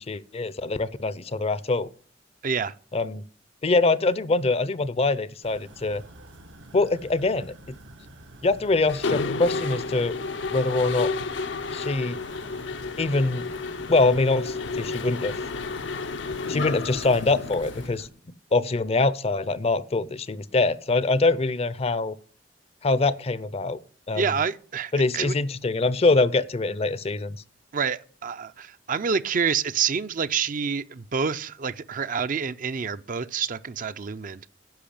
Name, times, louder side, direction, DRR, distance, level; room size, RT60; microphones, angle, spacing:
voice 1, 0.0-1.9 2.9-3.2 3.6-6.0 6.7-7.5 8.4-10.2 10.5-11.1 11.7-12.2 13.0-13.5 13.9-15.4 16.5-18.1 18.5-22.1 22.8-23.8 24.1-24.2 24.9-27.4, left 3 dB, 35° left, 0.5 m, -24 dB
voice 2, 2.4-2.7 24.1-25.3 27.7-34.4, right 6 dB, 45° right, 0.5 m, -27 dB
sound 1, 5.4-18.1, right 1 dB, 85° right, 1.3 m, -48 dB
Mechanisms, 8.9-17.9, left 4 dB, 80° left, 0.7 m, -31 dB
10.5 x 5.7 x 8.5 m
head